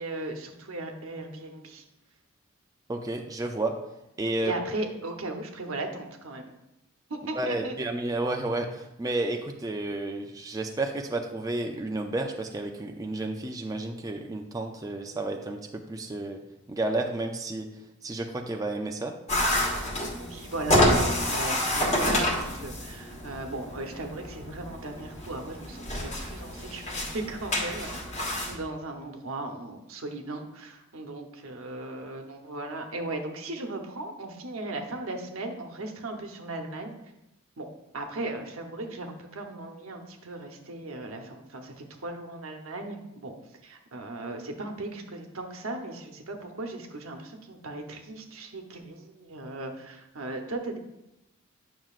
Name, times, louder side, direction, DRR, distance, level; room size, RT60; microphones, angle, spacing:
voice 1, 0.0-1.8 4.4-6.5 7.1-7.7 20.2-26.8 27.1-28.0 28.5-36.9 37.6-37.7 37.9-43.3 43.6-50.8, right 2 dB, 80° right, 4 dB, 0.9 m, -37 dB
voice 2, 2.9-3.8 4.2-4.5 7.4-16.4 16.7-17.7 18.0-19.2, right 2 dB, 15° right, 3 dB, 0.4 m, -31 dB
sound 1, 19.3-28.5, left 1 dB, 35° left, 1.3 m, -28 dB
9.0 x 6.0 x 2.4 m, 0.91 s
head